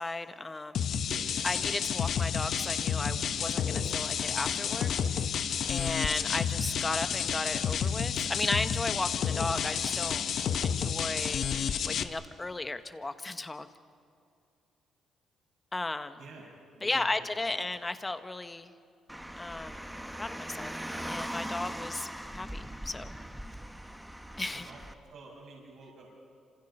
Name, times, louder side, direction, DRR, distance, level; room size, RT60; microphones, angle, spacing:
voice 1, 0.0-0.9 1.4-10.2 10.6-11.5 11.8-13.7 15.7-16.2 16.8-18.7 19.4-19.8 20.1-20.7 21.1-23.1 24.4-24.7, left 2 dB, 20° left, 10 dB, 1.3 m, -35 dB
sound 1, 0.7-12.0, left 7 dB, 65° left, 1.0 m, -30 dB
voice 2, 1.0-1.3 16.2-17.6 24.5-24.8 25.1-26.1, right 3 dB, 65° right, -2 dB, 6.2 m, -50 dB
Car, 19.1-24.9, right 1 dB, 5° right, 1.2 m, -40 dB
28.5 x 27.0 x 5.6 m, 2.4 s
cardioid pair, 90°, 0 cm